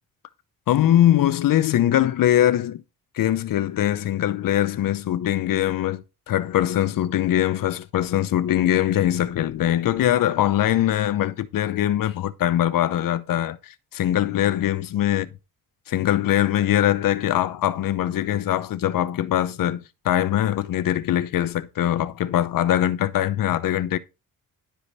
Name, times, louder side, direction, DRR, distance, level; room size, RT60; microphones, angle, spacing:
voice 1, 0.7-2.8 3.1-15.3 15.9-24.0, left 12 dB, 70° left, 0.8 m, -22 dB
11.0 x 5.0 x 4.1 m
cardioid pair, 110°, 34 cm